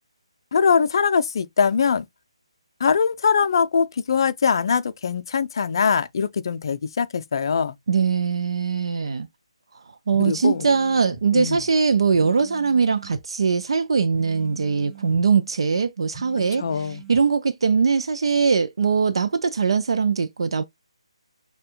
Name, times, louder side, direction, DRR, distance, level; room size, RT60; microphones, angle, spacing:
voice 1, 0.5-2.0 2.8-7.8 10.2-10.7 11.3-11.6 16.6-17.0, left 6 dB, 50° left, 0.4 m, -22 dB
voice 2, 7.9-9.3 10.1-20.6, right 5 dB, 60° right, 0.4 m, -21 dB
sound 1, 10.1-11.2 12.1-13.2 14.1-15.2 16.1-17.2, right 7 dB, 5° left, 0.9 m, -43 dB
6.6 x 2.3 x 2.3 m
figure-of-eight pair, 145°, 3 cm